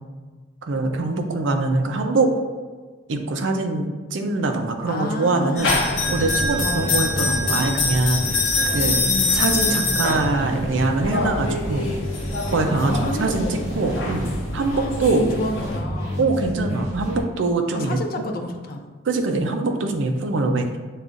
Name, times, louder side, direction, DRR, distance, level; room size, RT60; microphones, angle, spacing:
voice 1, 0.6-2.3 3.1-5.7 6.1-8.3 8.7-9.0 9.3-11.9 12.5-13.5 13.8-15.3 16.2-18.3 19.0-20.8, right 3 dB, 65° right, 5 dB, 0.4 m, -23 dB
voice 2, 4.9-5.8 6.6-7.1 8.5-8.8 9.1-9.6 12.7-13.7 14.7-16.4 17.7-18.8, left 1 dB, 45° left, 4 dB, 0.4 m, -31 dB
sound 1, 5.6-15.8, left 3 dB, 65° left, 0.7 m, -25 dB
sound 2, 5.9-17.2, equal, 15° right, 0.7 m, -31 dB
6.6 x 2.3 x 2.5 m, 1.4 s
head